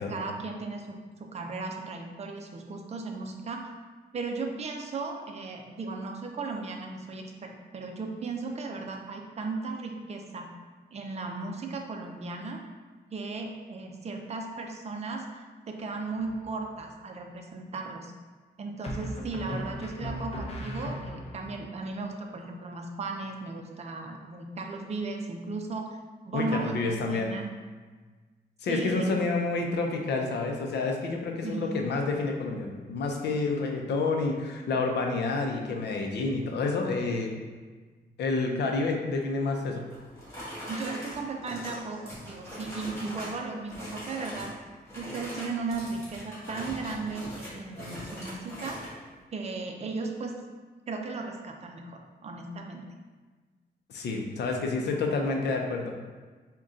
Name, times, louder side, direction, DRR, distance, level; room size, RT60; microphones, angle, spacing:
voice 1, 0.1-3.7 4.1-10.5 10.9-12.6 13.1-15.4 15.7-18.1 18.6-26.0 26.2-27.5 28.7-29.1 31.4-31.8 40.7-44.5 44.9-48.8 49.3-50.3 50.9-52.8, right 3 dB, 40° right, 2 dB, 0.4 m, -36 dB
sound 1, 16.2-16.7 18.8-21.5, equal, 35° left, 0.6 m, -37 dB
voice 2, 26.3-27.3 28.6-37.3 38.2-39.8 53.9-55.9, left 3 dB, 90° left, 2 dB, 0.5 m, -29 dB
sound 2, 39.9-43.4 43.7-44.5 44.9-48.9, equal, 15° left, 1.5 m, -41 dB
3.8 x 2.2 x 3.6 m, 1.4 s
wide cardioid pair, 120°, 17 cm